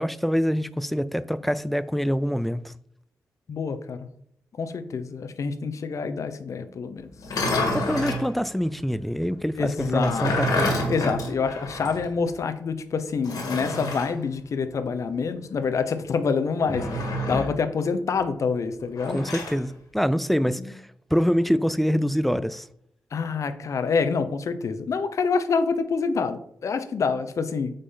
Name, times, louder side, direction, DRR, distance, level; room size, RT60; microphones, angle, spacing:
voice 1, 0.0-2.7 7.7-10.9 19.1-20.8 21.1-22.7, equal, ahead, 0.3 m, -25 dB
voice 2, 3.5-4.0 4.6-7.1 9.6-10.4 10.9-19.3 20.6-20.7 23.1-27.7, left 5 dB, 60° left, 0.7 m, -27 dB
sound 1, 7.2-8.3 9.8-12.1 12.3-12.4 13.2-14.1 16.6-17.6 19.0-19.6, left 1 dB, 80° left, 1.8 m, -28 dB
8.2 x 5.2 x 3.8 m
wide cardioid pair, 125°, 6 cm